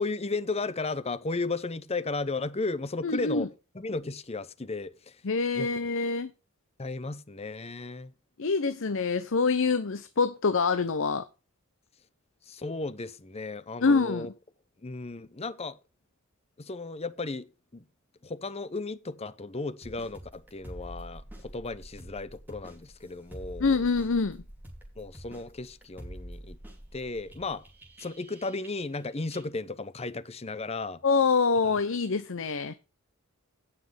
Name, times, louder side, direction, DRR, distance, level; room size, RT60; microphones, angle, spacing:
voice 1, 0.0-3.5 3.7-5.2 5.5-5.7 6.8-8.1 12.5-14.3 14.8-15.8 16.6-17.5 17.7-17.8 18.2-23.7 25.0-26.6 26.9-27.6 28.0-31.0 31.6-31.8, left 3 dB, 30° left, 0.8 m, -34 dB
voice 2, 3.0-3.5 5.2-6.3 8.4-11.2 13.8-14.3 23.6-24.4 31.0-32.7, left 4 dB, 60° left, 0.7 m, -25 dB
sound 1, 19.8-29.0 29.3-29.4, right 1 dB, 10° right, 2.9 m, -46 dB
16.5 x 6.0 x 3.4 m
head